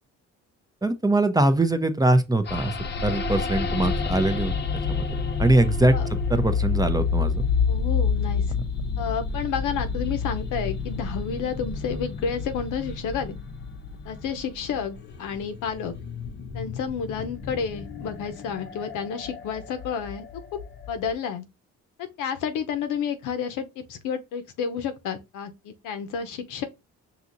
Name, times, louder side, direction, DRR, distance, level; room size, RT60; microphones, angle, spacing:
voice 1, 0.8-2.7 3.0-4.5 4.9-5.1 5.4-6.0 6.3-7.5, right 2 dB, 15° right, 0.5 m, -22 dB
sound 1, 2.5-21.1, left 5 dB, 35° left, 0.7 m, -29 dB
voice 2, 7.7-8.4 9.0-13.4 14.0-15.9 16.5-20.3 20.5-20.6 20.9-21.5 22.0-26.7, left 7 dB, 85° left, 0.8 m, -30 dB
5.7 x 2.7 x 2.5 m
cardioid pair, 90°, 30 cm